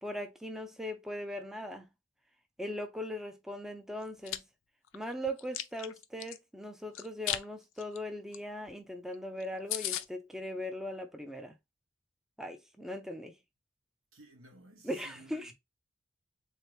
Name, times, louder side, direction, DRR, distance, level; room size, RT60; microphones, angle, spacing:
voice 1, 0.0-1.9 2.6-4.4 4.9-11.5 12.4-13.4 14.8-15.5, equal, ahead, 0.4 m, -39 dB
Chewing mastication, 4.0-4.4 4.9-6.4 6.9-7.4 7.8-8.0 8.3-8.4 8.7-8.8 9.1-9.2 9.4-9.5 9.7-10.0, left 12 dB, 65° left, 0.4 m, -35 dB
voice 2, 14.1-15.5, right 2 dB, 80° right, 1.1 m, -55 dB
3.6 x 2.8 x 3.3 m
head